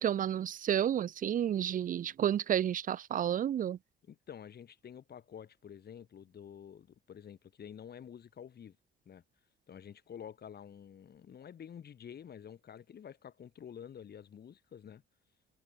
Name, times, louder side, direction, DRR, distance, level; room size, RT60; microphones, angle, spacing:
voice 1, 0.0-3.8, right 10 dB, 45° right, 0.4 m, -31 dB
voice 2, 4.0-8.8 9.0-9.2 9.7-15.0, left 8 dB, 55° left, 3.1 m, -49 dB
cardioid pair, 90°, 20 cm